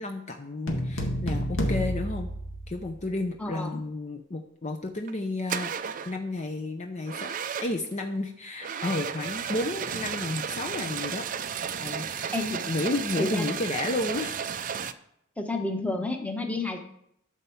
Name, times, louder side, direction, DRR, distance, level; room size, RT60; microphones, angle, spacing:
voice 1, 0.0-2.3 2.7-5.7 6.0-11.3 11.8-12.3 12.7-14.4, left 2 dB, 35° left, 5 dB, 0.7 m, -32 dB
sound 1, 0.7-3.2, equal, 75° left, 1.8 m, -30 dB
voice 2, 3.4-3.8 12.3-12.6 13.2-13.5 15.4-16.8, left 2 dB, 5° left, 3 dB, 1.1 m, -30 dB
sound 2, 4.9-5.1 5.5-6.2 7.1-7.9 8.6-14.9, right 7 dB, 40° right, 0.5 m, -33 dB
12.0 x 4.4 x 7.1 m, 0.75 s
head